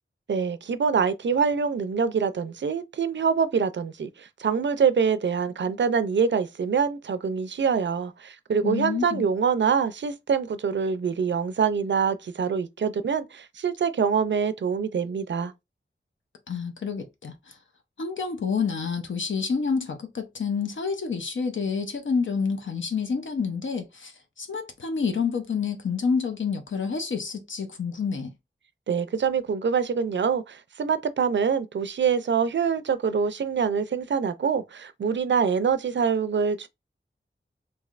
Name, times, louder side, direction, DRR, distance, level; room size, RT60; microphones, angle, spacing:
voice 1, 0.3-15.5 28.9-36.7, right 6 dB, 65° right, 0.4 m, -25 dB
voice 2, 8.6-9.2 16.5-17.6 18.0-28.3, left 5 dB, 70° left, 0.6 m, -28 dB
3.2 x 2.6 x 2.4 m
wide cardioid pair, 60°, 21 cm